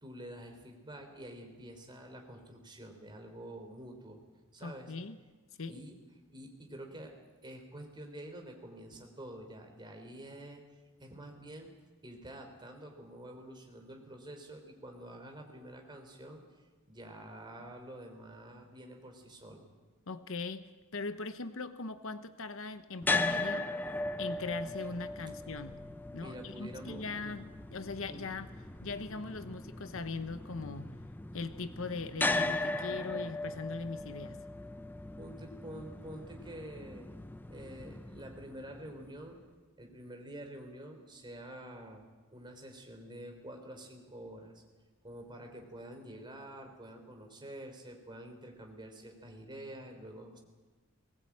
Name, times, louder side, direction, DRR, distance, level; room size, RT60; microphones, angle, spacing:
voice 1, 0.0-4.2 4.5-4.9 5.7-6.0 6.3-7.2 7.4-10.6 11.0-11.7 12.0-16.4 16.9-19.7 26.2-27.4 28.1-28.2 35.2-37.1 37.5-39.4 39.8-42.1 42.3-44.6 45.0-50.4, right 1 dB, 20° right, 3 dB, 3.6 m, -48 dB
voice 2, 4.6-5.2 5.6-5.8 20.1-23.7 24.2-25.8 26.1-27.4 27.7-28.5 28.8-30.9 31.3-34.4, left 3 dB, 65° left, 11 dB, 0.9 m, -40 dB
sound 1, 23.0-39.2, left 2 dB, 10° left, 0.7 m, -38 dB
20.5 x 19.0 x 8.6 m, 1.3 s
head